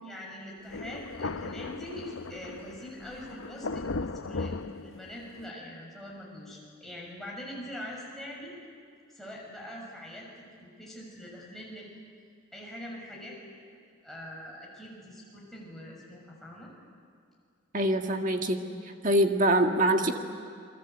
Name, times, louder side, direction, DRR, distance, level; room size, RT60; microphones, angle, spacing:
voice 1, 0.0-4.6 4.8-8.5 9.1-10.3 10.6-11.9 12.5-13.6 14.0-16.7, left 1 dB, ahead, -4 dB, 6.6 m, -43 dB
Thunder, 0.7-5.5, left 3 dB, 80° left, 0.8 m, -37 dB
voice 2, 17.7-18.6 19.0-20.1, right 1 dB, 40° right, 4 dB, 1.8 m, -24 dB
29.5 x 21.0 x 8.2 m, 2.3 s
head